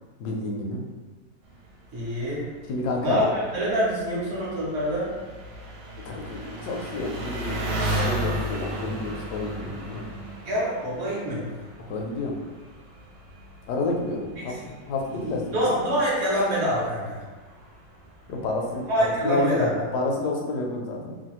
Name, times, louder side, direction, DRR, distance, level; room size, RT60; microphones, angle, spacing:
voice 1, 0.2-0.8 2.7-3.2 6.0-7.7 8.0-10.0 11.9-12.4 13.7-14.6 14.9-15.7 18.3-18.9 19.2-21.2, left 2 dB, 70° left, 0 dB, 1.0 m, -29 dB
Engine, 1.5-19.6, right 1 dB, 75° right, 1.2 m, -36 dB
voice 2, 1.9-2.4 3.0-5.1 10.4-11.5 14.4-14.7 15.1-17.2 18.9-19.8, equal, 50° right, -6 dB, 0.8 m, -26 dB
3.1 x 2.3 x 2.9 m, 1.3 s
omnidirectional pair, 2.0 m